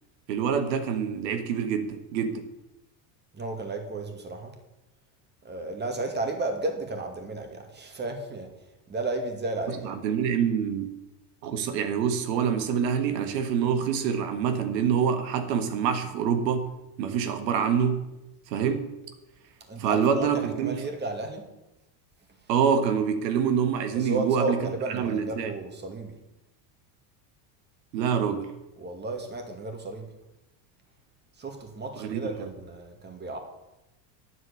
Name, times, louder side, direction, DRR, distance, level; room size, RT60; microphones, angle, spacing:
voice 1, 0.3-2.5 9.8-10.9 11.4-16.7 17.0-18.0 18.5-18.9 19.8-20.8 22.5-24.6 24.9-25.5 27.9-28.5 32.0-32.5, right 7 dB, 90° right, 8 dB, 1.6 m, -26 dB
voice 2, 3.3-4.5 5.4-8.5 8.9-10.0 19.7-21.4 23.9-26.1 28.8-30.1 31.4-33.4, right 2 dB, 20° right, 4 dB, 2.2 m, -33 dB
9.8 x 8.1 x 8.3 m, 0.95 s
supercardioid pair, 130°, 49 cm